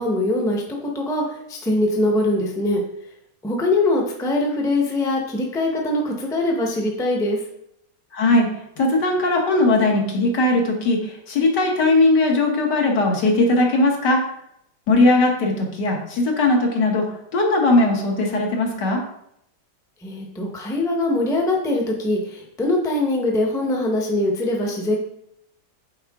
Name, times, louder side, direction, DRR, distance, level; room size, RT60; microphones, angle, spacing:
voice 1, 0.0-2.8 3.4-7.4 20.0-25.0, left 2 dB, 5° left, 0 dB, 0.7 m, -22 dB
voice 2, 8.1-8.5 8.8-14.2 14.9-19.0, left 2 dB, 65° left, 1 dB, 1.9 m, -19 dB
7.9 x 4.5 x 3.6 m, 0.76 s
omnidirectional pair, 2.0 m